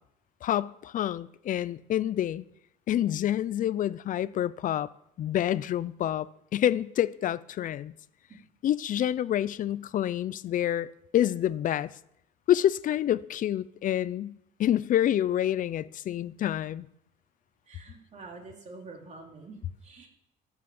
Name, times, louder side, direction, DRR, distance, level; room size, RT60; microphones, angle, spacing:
voice 1, 0.4-2.4 2.9-4.9 5.2-7.9 8.6-11.9 12.5-16.9, left 11 dB, 50° left, 0.5 m, -28 dB
voice 2, 17.7-20.1, right 3 dB, 45° right, 3.2 m, -47 dB
13.5 x 6.1 x 7.1 m
cardioid pair, 110°, 17 cm